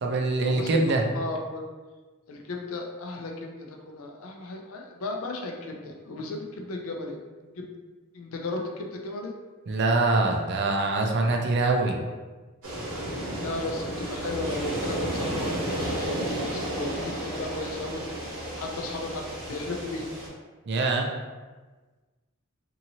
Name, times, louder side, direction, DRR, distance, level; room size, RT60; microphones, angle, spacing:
voice 1, 0.0-1.0 9.7-12.0 20.7-21.1, right 3 dB, 50° right, 1 dB, 0.4 m, -24 dB
voice 2, 1.1-1.6 2.3-7.2 7.6-7.7 8.1-9.3 13.4-18.0 18.5-20.1, left 2 dB, 70° left, 1 dB, 0.4 m, -35 dB
sound 1, 12.6-20.3, right 1 dB, 75° right, 1.0 m, -32 dB
2.8 x 2.6 x 2.7 m, 1.3 s
head